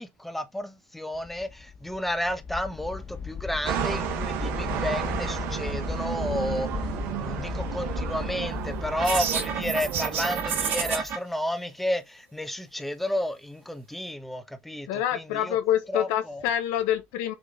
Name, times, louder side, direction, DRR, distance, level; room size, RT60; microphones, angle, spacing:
voice 1, 0.0-15.6 15.9-16.4, left 1 dB, 5° left, 1.2 m, -32 dB
sound 1, 1.1-11.1, left 5 dB, 25° left, 1.6 m, -36 dB
sound 2, 3.7-11.0, right 10 dB, 75° right, 1.3 m, -32 dB
sound 3, 9.0-11.2, right 7 dB, 55° right, 1.9 m, -29 dB
voice 2, 14.9-17.3, left 11 dB, 80° left, 1.1 m, -26 dB
6.6 x 3.7 x 3.8 m
supercardioid pair, 95°, 4 cm